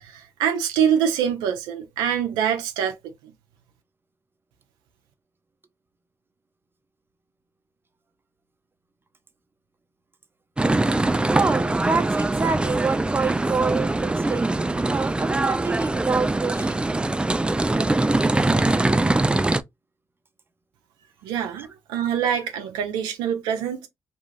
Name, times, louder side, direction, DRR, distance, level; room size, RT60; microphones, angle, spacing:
voice 1, 0.0-3.0 3.2-3.3 21.2-23.9, right 8 dB, 85° right, 0.5 m, -25 dB
sound 1, 10.6-19.6, right 2 dB, 15° right, 0.3 m, -22 dB
voice 2, 11.3-14.4 14.9-16.7, right 4 dB, 30° right, 0.8 m, -26 dB
2.5 x 2.3 x 3.2 m
supercardioid pair, 50°, 8 cm